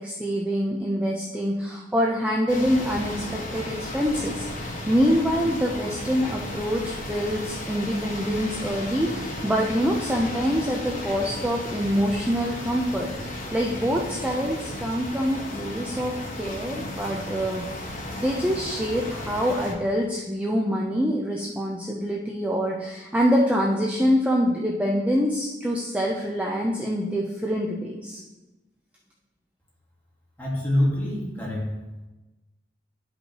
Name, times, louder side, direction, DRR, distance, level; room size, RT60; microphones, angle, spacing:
voice 1, 0.0-28.2, equal, 10° right, -2 dB, 0.6 m, -25 dB
sound 1, 2.5-19.7, left 1 dB, 45° left, 1.2 m, -34 dB
voice 2, 30.4-31.7, left 1 dB, 10° left, -5 dB, 1.8 m, -25 dB
11.5 x 5.3 x 3.0 m, 1.1 s
head